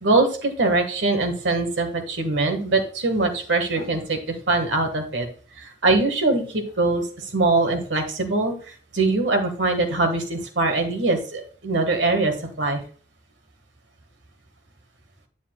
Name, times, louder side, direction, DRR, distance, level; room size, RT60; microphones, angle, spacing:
voice 1, 0.0-5.3 5.6-12.8, right 3 dB, 85° right, 5 dB, 1.6 m, -23 dB
9.7 x 7.2 x 2.3 m, 0.42 s
head